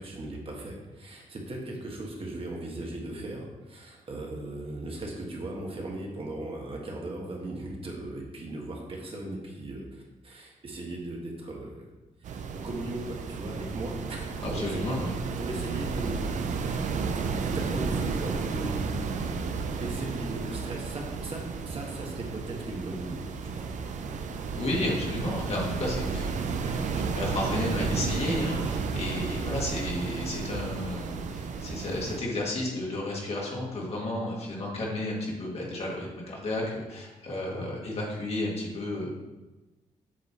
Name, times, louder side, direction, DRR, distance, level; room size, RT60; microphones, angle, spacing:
voice 1, 0.0-11.9 12.2-15.0 15.4-23.7, right 2 dB, 45° right, -1 dB, 1.4 m, -38 dB
sound 1, 12.2-32.2, right 5 dB, 65° right, 0.6 m, -32 dB
voice 2, 14.4-15.1 24.5-39.1, left 1 dB, 50° left, -3 dB, 1.9 m, -32 dB
7.6 x 3.1 x 4.2 m, 1.1 s
cardioid pair, 80°, 14 cm